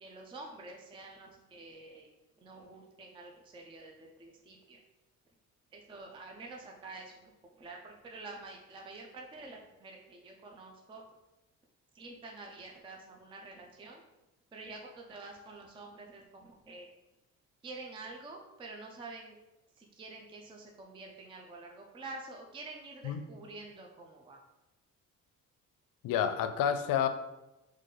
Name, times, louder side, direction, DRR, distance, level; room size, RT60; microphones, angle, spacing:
voice 1, 0.0-2.1 2.4-4.8 5.7-11.0 11.9-14.0 14.5-16.9 17.6-19.4 19.8-24.4, right 3 dB, 15° right, 1 dB, 0.4 m, -48 dB
voice 2, 26.0-27.1, left 8 dB, 80° left, 9 dB, 0.5 m, -29 dB
3.9 x 3.2 x 3.7 m, 0.98 s
cardioid pair, 160°, 33 cm